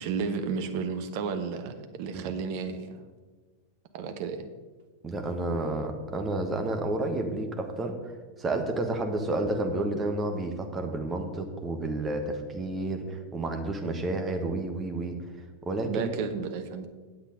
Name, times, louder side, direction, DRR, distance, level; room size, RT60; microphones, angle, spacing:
voice 1, 0.0-3.0 3.9-4.5 15.9-16.9, right 5 dB, 45° right, 7 dB, 1.0 m, -32 dB
voice 2, 5.0-8.1 8.4-15.2 15.7-16.1, right 2 dB, 20° right, 4 dB, 1.3 m, -30 dB
8.8 x 8.0 x 5.1 m, 1.4 s
figure-of-eight pair, 90°, 0 cm